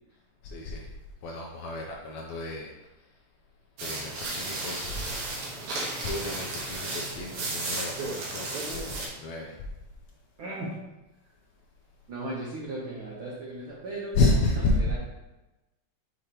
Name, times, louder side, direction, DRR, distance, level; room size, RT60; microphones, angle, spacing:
voice 1, 0.4-0.9 1.2-2.7 3.8-5.1 6.0-9.6 14.1-14.9, left 2 dB, 80° left, 0 dB, 1.6 m, -30 dB
sound 1, 3.8-9.1, right 2 dB, 70° right, 2.5 m, -34 dB
voice 2, 10.4-10.7 12.1-15.0, right 2 dB, 85° right, -4 dB, 1.1 m, -37 dB
6.4 x 5.0 x 2.9 m, 1.0 s
omnidirectional pair, 3.8 m